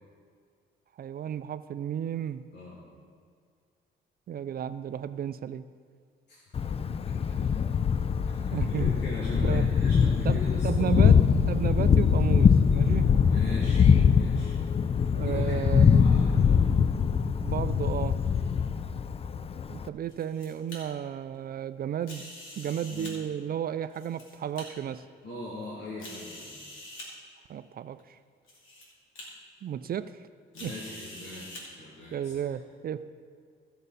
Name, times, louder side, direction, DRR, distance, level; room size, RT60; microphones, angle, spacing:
voice 1, 1.0-2.4 4.3-5.6 8.5-8.9 9.3-9.7 10.2-11.2 11.5-13.1 14.4-14.5 15.1-16.1 17.4-18.2 19.7-25.0 27.5-28.2 29.6-30.1 30.6-30.7 32.1-33.0, right 9 dB, 50° right, 13 dB, 0.4 m, -33 dB
voice 2, 6.3-6.8 8.3-11.1 13.2-14.6 15.2-16.6 18.3-18.6 22.9-23.1 25.2-26.5 30.5-32.3, left 1 dB, 60° left, -7 dB, 2.6 m, -41 dB
Thunder, 6.5-19.9, left 6 dB, 30° left, 0.4 m, -23 dB
sound 1, 20.1-20.8 22.0-23.1 23.8-24.6 25.3-25.4 26.0-27.1 28.0-28.1 28.5-28.8 29.2-29.3 30.5-31.6, left 1 dB, 85° left, 2.7 m, -45 dB
16.0 x 6.7 x 4.1 m, 2.1 s
cardioid pair, 90°, 20 cm